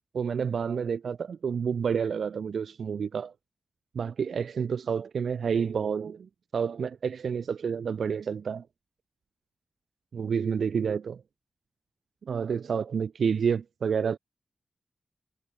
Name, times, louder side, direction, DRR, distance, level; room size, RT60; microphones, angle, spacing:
voice 1, 0.1-3.3 4.0-8.6 10.1-11.2 12.3-14.2, right 6 dB, 85° right, 0.3 m, -29 dB
wide cardioid pair, 110°, 0 cm